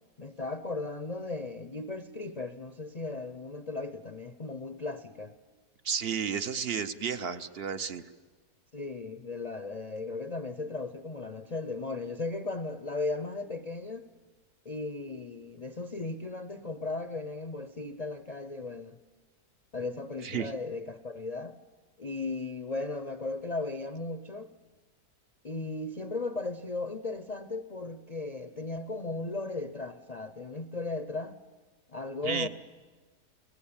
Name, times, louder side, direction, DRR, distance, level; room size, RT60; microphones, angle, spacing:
voice 1, 0.2-5.4 8.7-14.1 14.6-19.0 19.7-21.6 22.0-24.5 25.4-31.4 31.9-32.5, left 3 dB, 35° left, 10 dB, 0.7 m, -36 dB
voice 2, 5.8-8.0 20.2-20.5 32.2-32.5, right 7 dB, 45° right, 12 dB, 1.0 m, -32 dB
29.5 x 18.0 x 8.9 m, 1.3 s
omnidirectional pair, 1.6 m